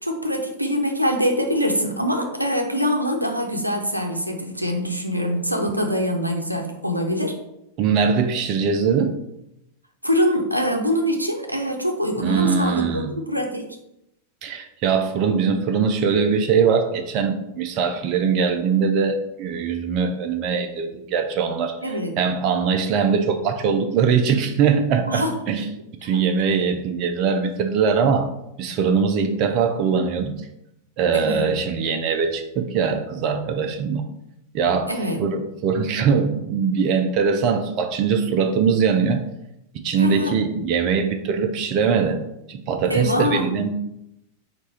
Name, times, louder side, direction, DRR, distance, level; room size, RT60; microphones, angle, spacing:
voice 1, 0.0-7.4 10.0-13.6 21.8-22.1 25.1-25.3 26.1-26.2 31.1-31.4 34.9-35.2 40.0-40.3 42.9-43.4, equal, 90° right, 3 dB, 0.6 m, -24 dB
voice 2, 7.8-9.1 12.2-13.2 14.4-25.6 26.0-28.3 28.6-30.5 31.0-34.0 34.5-34.9 35.2-39.2 39.8-42.2 42.5-43.7, right 6 dB, 40° right, 6 dB, 0.5 m, -21 dB
4.6 x 2.5 x 4.2 m, 0.83 s
figure-of-eight pair, 90°, 0 cm